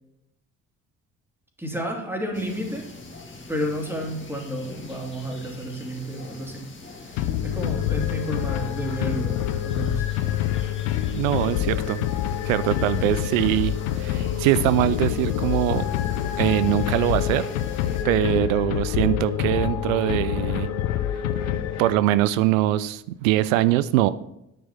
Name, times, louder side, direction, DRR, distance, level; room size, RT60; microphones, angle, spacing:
voice 1, 1.6-2.8 3.5-6.6 7.0-10.1, equal, 5° right, 1 dB, 3.0 m, -31 dB
sound 1, 2.3-18.0, left 2 dB, 30° left, 2.3 m, -43 dB
sound 2, 7.1-22.2, left 11 dB, 75° left, 0.8 m, -26 dB
voice 2, 11.1-12.0 12.4-15.8 16.4-17.5 18.0-20.7 21.8-24.1, right 14 dB, 75° right, 16 dB, 0.5 m, -22 dB
9.5 x 6.9 x 5.9 m, 0.84 s
figure-of-eight pair, 45°, 41 cm